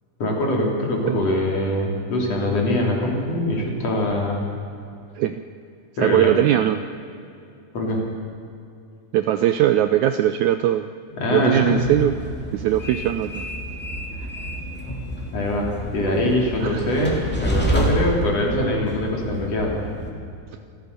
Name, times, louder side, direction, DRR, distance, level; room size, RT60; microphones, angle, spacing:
voice 1, 0.2-4.4 6.0-6.3 7.7-8.0 11.2-11.8 14.9-15.0 15.3-19.7, left 1 dB, 50° left, -1 dB, 4.2 m, -23 dB
voice 2, 6.0-6.8 9.1-10.9 11.3-12.1 12.5-13.5 16.6-16.9, right 12 dB, 80° right, 10 dB, 1.8 m, -20 dB
Train, 11.8-20.1, equal, 5° left, 2.4 m, -28 dB
27.0 x 15.0 x 6.8 m, 2.5 s
omnidirectional pair, 3.8 m